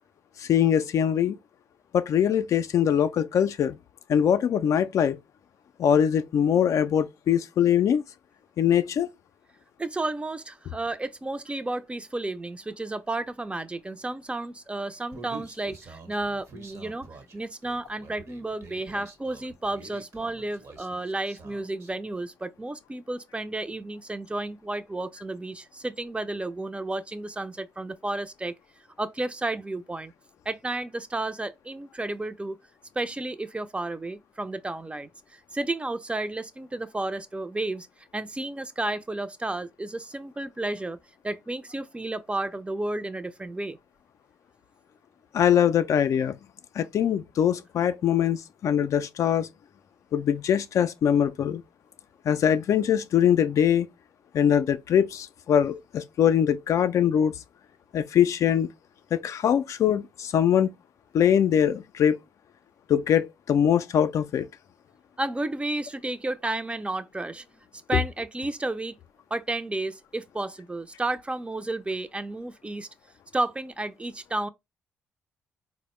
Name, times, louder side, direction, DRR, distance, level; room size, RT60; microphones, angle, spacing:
voice 1, 0.4-1.4 1.9-3.8 4.1-5.2 5.8-8.0 8.6-9.1 45.3-46.4 46.8-49.5 50.1-51.6 52.3-53.9 54.3-57.3 57.9-58.7 59.1-60.7 61.1-62.2 62.9-64.5 67.9-68.0, left 9 dB, 60° left, 0.3 m, -22 dB
voice 2, 9.8-17.1 17.3-28.5 29.0-30.1 30.5-32.6 33.0-37.9 38.1-41.0 41.2-43.8 65.2-67.5 67.9-68.9 69.3-72.9 73.3-74.5, right 2 dB, 20° right, 0.5 m, -32 dB
Human voice, 15.1-21.9, right 3 dB, 50° right, 0.9 m, -47 dB
4.0 x 2.1 x 3.1 m
hypercardioid pair, 45°, 6 cm